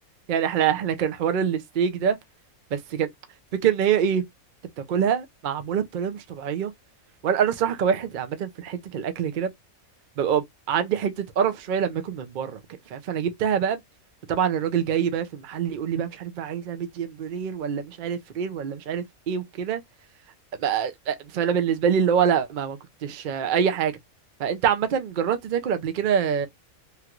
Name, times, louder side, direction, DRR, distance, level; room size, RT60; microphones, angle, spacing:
voice 1, 0.3-2.2 2.7-3.1 3.6-4.2 4.9-6.7 7.2-9.5 10.2-12.6 12.9-13.8 14.3-19.8 20.6-23.9 24.4-26.5, right 8 dB, 80° right, 0.4 m, -25 dB
3.2 x 2.4 x 2.8 m
omnidirectional pair, 1.5 m